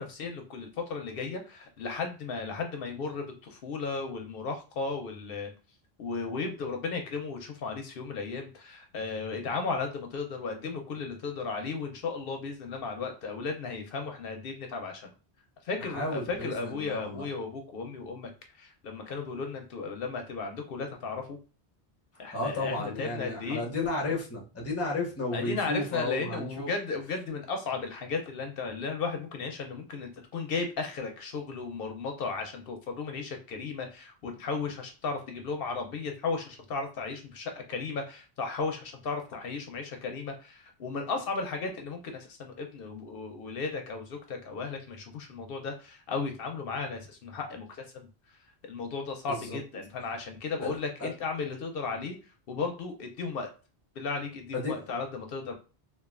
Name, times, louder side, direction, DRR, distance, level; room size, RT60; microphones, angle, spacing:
voice 1, 0.0-5.5 6.0-15.1 15.6-18.3 18.5-21.4 22.2-23.6 25.3-47.7 47.9-48.1 48.6-52.2 52.5-53.5 54.0-55.5, left 4 dB, 65° left, 4 dB, 0.7 m, -35 dB
voice 2, 15.9-17.2 22.3-26.7 49.3-49.6 50.6-50.7 51.0-51.1 54.5-54.8, left 2 dB, 20° left, -1 dB, 0.5 m, -33 dB
3.0 x 2.3 x 2.4 m, 0.35 s
omnidirectional pair, 1.1 m